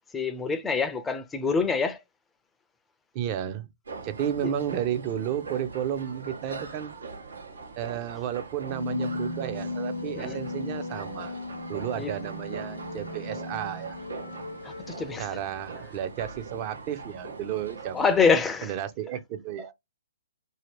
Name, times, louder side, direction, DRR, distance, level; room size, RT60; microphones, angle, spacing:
voice 1, 0.1-2.0 4.4-4.5 10.2-10.4 11.9-12.4 14.6-15.4 17.9-18.7 19.6-19.7, left 5 dB, 10° left, 0.5 m, -26 dB
voice 2, 3.1-3.7 4.0-6.9 7.8-11.4 11.7-14.0 15.2-18.0 18.6-19.7, right 10 dB, 35° right, 0.6 m, -32 dB
sound 1, 3.8-18.3, right 4 dB, 85° right, 1.1 m, -42 dB
sound 2, 8.7-15.9, left 2 dB, 90° left, 0.6 m, -36 dB
2.8 x 2.8 x 3.1 m
hypercardioid pair, 145°, 0 cm